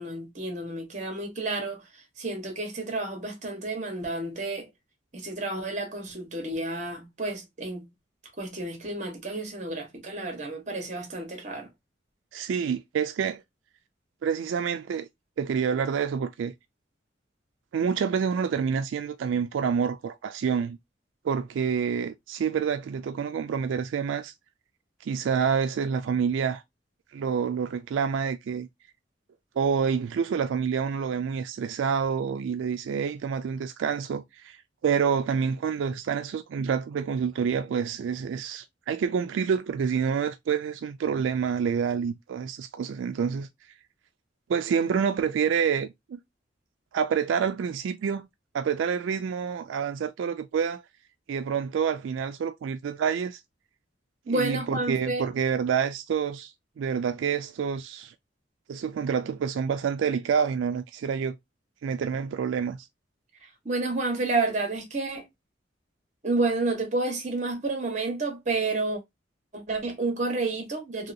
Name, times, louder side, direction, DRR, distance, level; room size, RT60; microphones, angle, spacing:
voice 1, 0.0-1.8 2.2-4.7 5.1-7.9 8.4-11.7 54.3-55.2 63.4-65.2 66.2-69.0 69.5-71.1, right 3 dB, 40° right, 1.1 m, -30 dB
voice 2, 12.3-13.4 14.2-15.1 15.4-16.5 17.7-20.8 21.2-24.3 25.0-26.6 27.1-28.7 29.6-43.5 44.5-46.2 46.9-48.3 48.5-50.8 51.3-53.4 54.3-58.1 58.7-61.4 61.8-62.9, right 6 dB, 85° right, 0.3 m, -28 dB
3.0 x 2.8 x 2.4 m
head